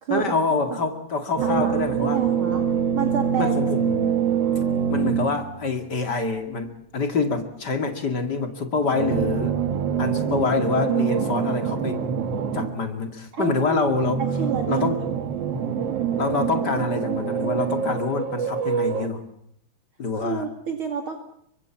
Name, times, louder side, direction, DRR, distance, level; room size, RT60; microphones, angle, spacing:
voice 1, 0.1-2.2 3.4-4.3 4.9-9.6 10.0-12.0 12.5-14.2 14.7-15.0 16.2-19.2 20.0-20.4, left 4 dB, 40° left, 6 dB, 1.6 m, -26 dB
voice 2, 1.4-1.7 2.0-2.6 2.9-3.6 13.3-13.9 14.4-14.9 20.2-21.2, right 7 dB, 45° right, 4 dB, 1.8 m, -28 dB
sound 1, 1.4-5.9 8.8-13.0 13.8-19.1, right 8 dB, 90° right, 1.3 m, -25 dB
27.5 x 24.5 x 7.3 m, 0.69 s
omnidirectional pair, 5.5 m